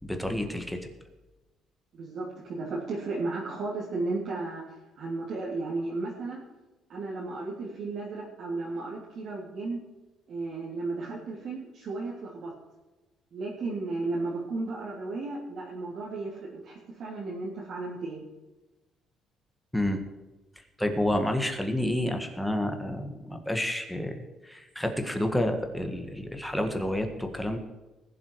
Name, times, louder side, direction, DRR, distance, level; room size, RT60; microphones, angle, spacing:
voice 1, 0.0-0.8 19.7-20.0 20.8-27.6, left 1 dB, 5° left, 5 dB, 1.7 m, -29 dB
voice 2, 1.9-4.6 4.9-6.4 6.9-9.8 10.3-12.5 13.3-18.3, right 3 dB, 55° right, -6 dB, 3.2 m, -34 dB
20.5 x 7.5 x 4.8 m, 1.1 s
cardioid pair, 125°, 0 cm